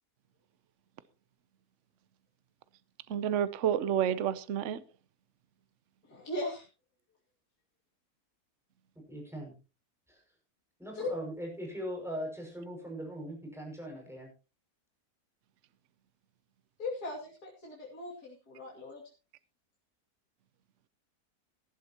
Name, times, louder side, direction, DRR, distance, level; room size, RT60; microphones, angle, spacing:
voice 1, 3.1-4.8, right 9 dB, 60° right, 1.0 m, -29 dB
voice 2, 6.1-6.7 10.9-11.1 16.8-19.0, left 2 dB, 80° left, 3.2 m, -38 dB
voice 3, 9.1-9.5 10.1-10.2 10.8-14.3, equal, ahead, 5.9 m, -40 dB
18.5 x 11.5 x 2.9 m
omnidirectional pair, 1.6 m